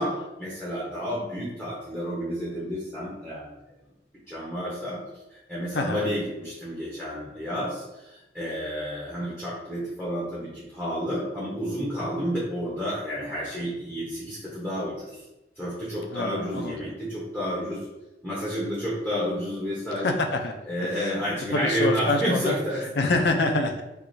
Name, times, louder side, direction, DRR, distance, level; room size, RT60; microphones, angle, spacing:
voice 1, 0.0-3.6 4.3-5.0 5.3-15.2 15.6-17.8 18.2-20.2 20.7-22.8, equal, 5° right, -8 dB, 0.7 m, -30 dB
voice 2, 5.7-6.1 16.1-16.9 19.9-20.5 20.8-21.2 21.5-22.6 23.0-23.8, left 2 dB, 70° left, 4 dB, 0.4 m, -26 dB
4.5 x 2.4 x 2.6 m, 0.97 s
head